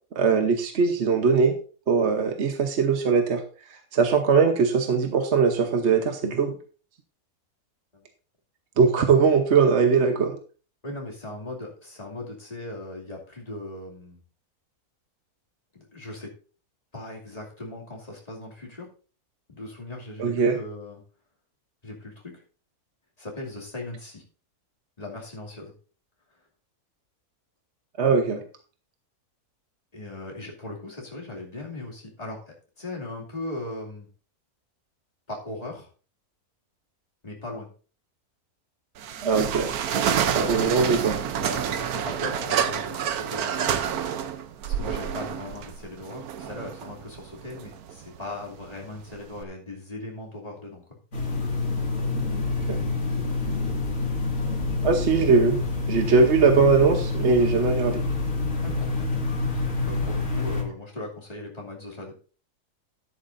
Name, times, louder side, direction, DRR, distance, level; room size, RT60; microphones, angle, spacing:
voice 1, 0.2-1.5 1.9-3.4 3.9-6.5 8.8-10.4 20.2-20.6 28.0-28.4 39.2-39.7 40.3-41.2 52.3-52.4 52.7-52.9 54.8-55.6 55.9-58.0, right 5 dB, 50° right, 5 dB, 1.1 m, -21 dB
voice 2, 10.8-14.2 15.7-16.3 16.9-18.9 19.5-21.0 21.8-22.4 23.2-24.2 25.0-25.7 29.9-34.1 35.3-35.9 37.2-37.7 40.1-40.7 41.4-43.7 44.6-50.8 58.6-59.1 59.8-62.2, left 2 dB, 25° left, -3 dB, 2.7 m, -38 dB
sound 1, 39.0-49.4, right 8 dB, 80° right, 1.3 m, -29 dB
sound 2, 51.1-60.6, left 3 dB, 60° left, 2.5 m, -27 dB
12.5 x 11.0 x 2.6 m, 0.38 s
omnidirectional pair, 1.6 m